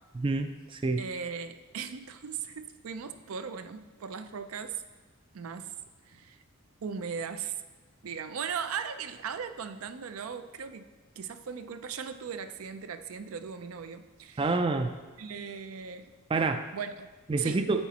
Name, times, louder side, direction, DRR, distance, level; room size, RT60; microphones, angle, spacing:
voice 1, 0.1-1.0 14.4-14.9 16.3-16.6 17.3-17.9, right 3 dB, 25° right, 8 dB, 0.3 m, -28 dB
voice 2, 1.0-4.8 5.3-5.8 6.1-6.4 6.8-7.6 8.0-10.9 11.2-14.5 15.2-16.1 16.7-17.1 17.4-17.6, right 6 dB, 85° right, 9 dB, 0.5 m, -38 dB
9.7 x 7.2 x 2.9 m, 1.4 s
head